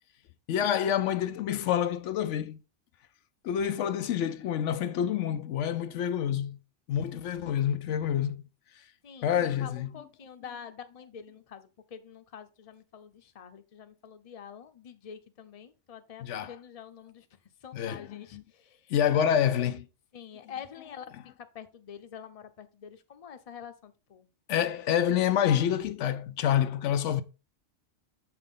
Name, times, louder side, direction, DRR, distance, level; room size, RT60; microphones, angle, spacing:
voice 1, 0.5-2.6 3.4-6.6 6.9-8.4 9.2-9.9 16.2-16.5 17.7-18.4 18.9-19.8 24.5-27.2, left 9 dB, 80° left, 0.9 m, -27 dB
voice 2, 9.0-19.0 20.1-21.1 21.4-24.3, left 8 dB, 35° left, 0.7 m, -46 dB
7.7 x 5.8 x 3.7 m
omnidirectional pair, 1.2 m